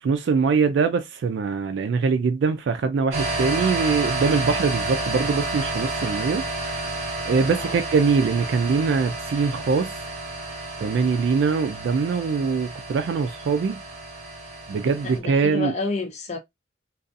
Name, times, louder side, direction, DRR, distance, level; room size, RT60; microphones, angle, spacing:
voice 1, 0.0-6.4 7.0-10.0 10.8-13.8 14.7-15.7, right 5 dB, 70° right, 0.3 m, -23 dB
sound 1, 3.1-15.2, right 2 dB, 40° right, 0.8 m, -30 dB
voice 2, 7.4-7.8 15.0-16.4, left 3 dB, 35° left, 0.5 m, -30 dB
2.6 x 2.3 x 2.4 m
head